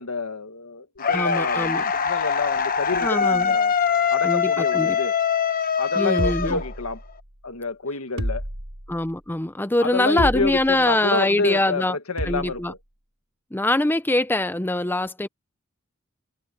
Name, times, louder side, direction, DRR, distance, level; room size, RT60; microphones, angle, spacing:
voice 1, 0.0-3.7 4.1-5.1 5.8-7.0 7.4-8.4 9.8-12.8, left 3 dB, 90° left, 1.8 m, -28 dB
sound 1, 1.0-7.1, left 6 dB, 40° left, 1.1 m, -23 dB
voice 2, 1.1-1.8 3.0-3.5 4.2-5.0 6.0-6.6 8.9-12.0 12.2-12.7 13.5-15.3, left 1 dB, 10° left, 0.6 m, -23 dB
sound 2, 6.2-7.3 8.2-9.1 10.2-10.9 12.2-12.7, equal, 70° right, 4.8 m, -30 dB
head